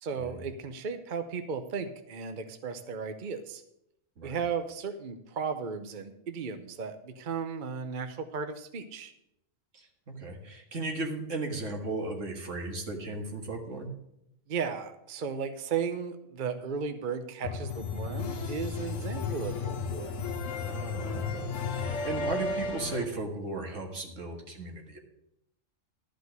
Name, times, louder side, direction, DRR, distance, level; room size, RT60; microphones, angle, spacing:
voice 1, 0.0-3.6 4.2-9.1 14.5-20.1, right 6 dB, 45° right, 8 dB, 0.8 m, -35 dB
voice 2, 9.7-13.9 20.6-25.0, right 2 dB, 75° right, 3 dB, 2.0 m, -36 dB
sound 1, 17.4-23.0, left 4 dB, 75° left, 1.5 m, -33 dB
12.5 x 5.2 x 8.0 m, 0.81 s
omnidirectional pair, 1.3 m